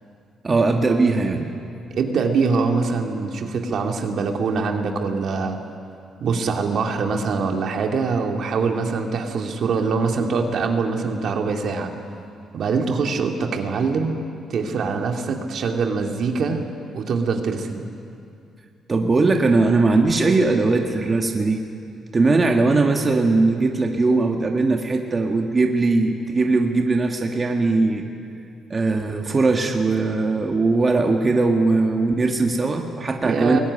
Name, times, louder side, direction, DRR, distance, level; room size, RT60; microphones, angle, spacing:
voice 1, 0.4-1.5 18.9-21.6 22.1-28.0 28.7-33.6, right 3 dB, 30° right, 2 dB, 1.8 m, -20 dB
voice 2, 1.9-5.6 6.2-11.9 12.5-14.2 14.5-16.6 16.9-17.9 33.2-33.6, right 4 dB, 65° right, 3 dB, 2.3 m, -23 dB
21.5 x 18.0 x 9.9 m, 2.5 s
cardioid pair, 90°, 0 cm